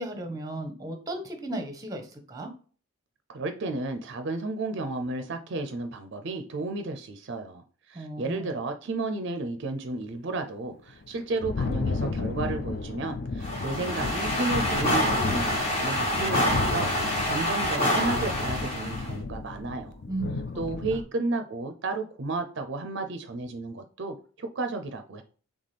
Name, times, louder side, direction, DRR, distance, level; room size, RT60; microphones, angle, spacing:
voice 1, 0.0-2.5 7.9-8.5 20.1-20.4, right 1 dB, 15° right, 6 dB, 0.7 m, -35 dB
voice 2, 3.3-16.9 17.2-20.0 20.6-25.2, right 3 dB, 55° right, 7 dB, 0.5 m, -33 dB
Thunder, 10.9-21.0, left 3 dB, 45° left, 0.3 m, -33 dB
sound 1, 13.4-19.1, equal, 30° left, 1.2 m, -27 dB
4.1 x 3.4 x 3.3 m, 0.41 s
head